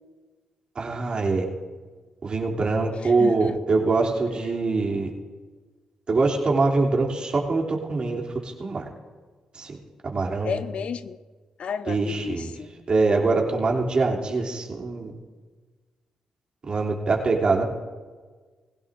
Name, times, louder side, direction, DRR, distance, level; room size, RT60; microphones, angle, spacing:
voice 1, 0.7-1.5 2.2-5.1 6.1-8.9 9.5-9.7 10.0-10.6 11.9-12.5 12.9-15.1 16.7-17.6, right 3 dB, 50° right, -1 dB, 3.0 m, -24 dB
voice 2, 3.0-3.5 10.4-11.2 11.6-12.7, left 7 dB, 65° left, 12 dB, 0.7 m, -32 dB
21.0 x 16.5 x 2.7 m, 1.4 s
hypercardioid pair, 45°, 2 cm